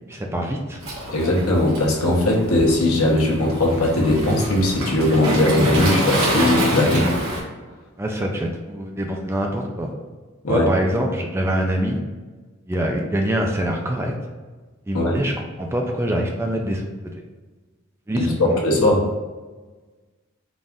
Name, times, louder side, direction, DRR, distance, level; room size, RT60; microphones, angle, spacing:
voice 1, 0.1-0.8 8.0-9.9 10.5-12.0 12.7-14.1 14.9-15.3 15.6-16.8 18.1-18.6, equal, 10° right, 1 dB, 0.3 m, -24 dB
Waves surf, 0.8-7.4, equal, 75° right, 1.1 m, -26 dB
voice 2, 1.1-7.1 10.4-10.7 14.9-15.2 18.1-18.2 18.6-19.1, left 1 dB, 75° left, -2 dB, 0.9 m, -19 dB
4.0 x 2.4 x 3.5 m, 1.3 s
head